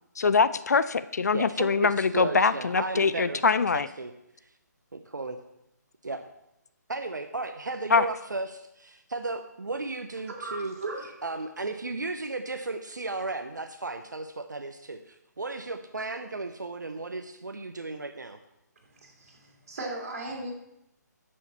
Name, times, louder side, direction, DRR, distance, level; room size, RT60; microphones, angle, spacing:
voice 1, 0.2-3.9 7.9-8.1, left 5 dB, 60° left, 14 dB, 0.5 m, -23 dB
voice 2, 1.3-4.1 4.4-4.5 4.9-5.4 6.0-6.2 6.9-10.7 11.2-18.4, right 3 dB, 75° right, 7 dB, 0.7 m, -35 dB
voice 3, 10.3-11.1 19.0-20.5, right 2 dB, 50° right, 0 dB, 2.8 m, -37 dB
11.5 x 6.5 x 4.2 m, 0.84 s
figure-of-eight pair, 140°, 10 cm